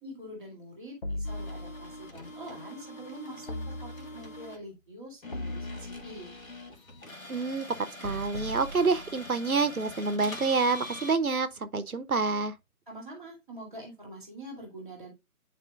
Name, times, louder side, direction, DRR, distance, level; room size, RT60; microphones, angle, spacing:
voice 1, 0.0-3.5 3.8-6.3 12.9-15.1, equal, ahead, 1.1 m, -45 dB
sound 1, 1.0-2.1 3.5-4.4 5.3-6.4 8.0-9.5, left 1 dB, 40° left, 0.7 m, -39 dB
sound 2, 1.2-4.6 5.2-11.2, left 1 dB, 65° left, 1.7 m, -44 dB
voice 2, 7.3-7.7 8.0-12.5, right 4 dB, 75° right, 0.9 m, -27 dB
9.4 x 4.3 x 2.4 m
figure-of-eight pair, 155°, 43 cm